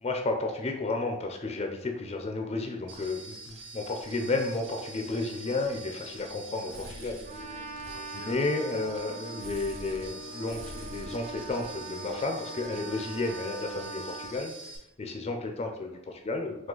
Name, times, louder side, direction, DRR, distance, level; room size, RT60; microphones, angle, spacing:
voice 1, 0.0-7.2 8.2-14.5 15.0-16.7, left 2 dB, 30° left, 3 dB, 0.4 m, -32 dB
sound 1, 2.9-14.8, right 2 dB, 60° right, 1.1 m, -45 dB
Piano, 4.2-8.6 9.0-13.6, right 2 dB, 85° right, 1.4 m, -54 dB
voice 2, 6.7-8.8 15.6-16.0, left 2 dB, 90° left, 3 dB, 0.9 m, -50 dB
Trumpet, 7.2-14.4, right 4 dB, 35° right, 0.4 m, -43 dB
4.7 x 2.3 x 3.8 m, 0.84 s
head